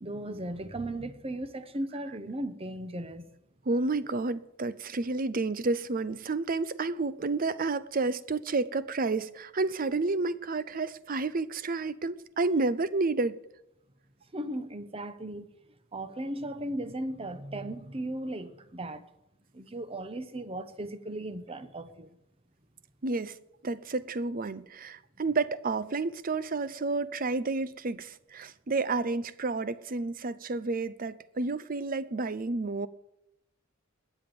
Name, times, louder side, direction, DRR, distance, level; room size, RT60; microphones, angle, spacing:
voice 1, 0.0-3.3 14.3-15.4 15.9-19.1 19.5-22.1, right 1 dB, 30° right, 1.0 m, -36 dB
voice 2, 3.7-13.4 23.0-23.4 23.6-32.9, right 3 dB, 45° right, 0.7 m, -30 dB
20.5 x 7.9 x 6.9 m
head